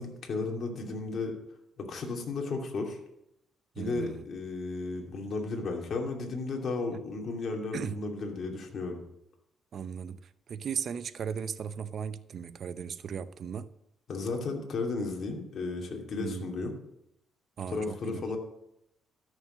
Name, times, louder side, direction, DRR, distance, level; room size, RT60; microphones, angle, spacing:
voice 1, 0.0-1.4 1.8-3.0 3.8-9.0 14.1-16.7 17.7-18.4, left 3 dB, 55° left, 1 dB, 2.6 m, -34 dB
voice 2, 3.8-4.3 6.9-7.0 7.7-8.0 9.7-10.2 10.5-13.7 16.2-16.5 17.6-18.2, right 7 dB, 55° right, 14 dB, 0.7 m, -36 dB
13.5 x 6.6 x 6.4 m, 0.81 s
cardioid pair, 90°, 0 cm